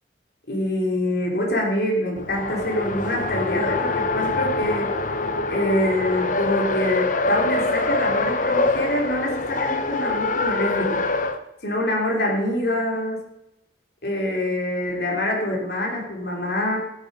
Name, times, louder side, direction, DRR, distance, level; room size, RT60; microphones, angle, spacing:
voice 1, 0.5-4.9 5.5-11.1 11.6-13.2 14.0-16.8, left 1 dB, 60° left, -1 dB, 3.0 m, -25 dB
Race car auto racing, 2.2-11.4, left 3 dB, 45° left, 0.7 m, -25 dB
15.5 x 7.3 x 5.4 m, 0.87 s
head